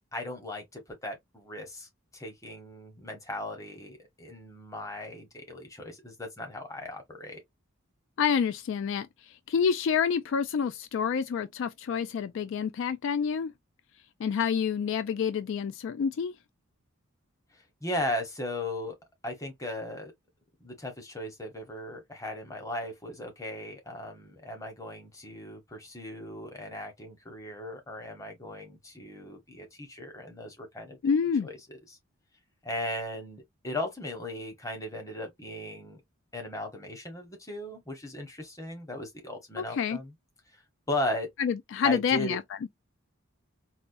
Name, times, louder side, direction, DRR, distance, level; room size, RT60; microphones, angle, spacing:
voice 1, 0.1-7.4 17.5-19.0 19.2-20.1 20.6-31.0 31.4-32.0 32.6-36.0 36.3-40.1 40.9-41.3 41.8-42.4, left 1 dB, 15° left, 0.9 m, -37 dB
voice 2, 8.2-13.5 14.2-16.3 31.0-31.5 39.6-40.0 41.4-42.4, left 6 dB, 60° left, 0.3 m, -28 dB
4.2 x 2.2 x 2.5 m
head